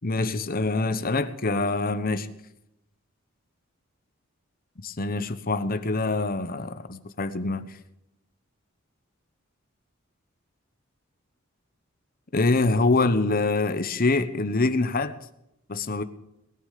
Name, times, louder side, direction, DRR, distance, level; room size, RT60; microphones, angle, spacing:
voice 1, 0.0-2.3 4.8-7.7 12.3-15.2 15.7-16.0, left 3 dB, 45° left, 1.1 m, -25 dB
21.0 x 9.8 x 6.8 m
head